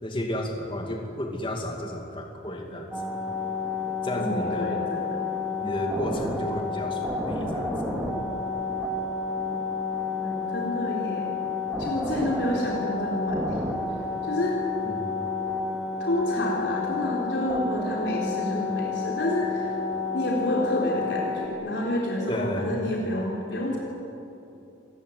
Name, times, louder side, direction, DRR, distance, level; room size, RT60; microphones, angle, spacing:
voice 1, 0.0-2.9 4.0-4.8 5.6-7.7 14.8-15.1 22.3-22.8, equal, 25° left, 2 dB, 2.5 m, -32 dB
sound 1, 2.9-21.5, left 3 dB, ahead, 3.1 m, -30 dB
voice 2, 4.2-5.2 9.5-9.6 10.2-11.4 11.8-13.6 14.2-14.6 16.0-19.7 20.1-23.8, left 1 dB, 60° left, -3 dB, 3.9 m, -29 dB
26.5 x 20.0 x 9.6 m, 2.9 s
head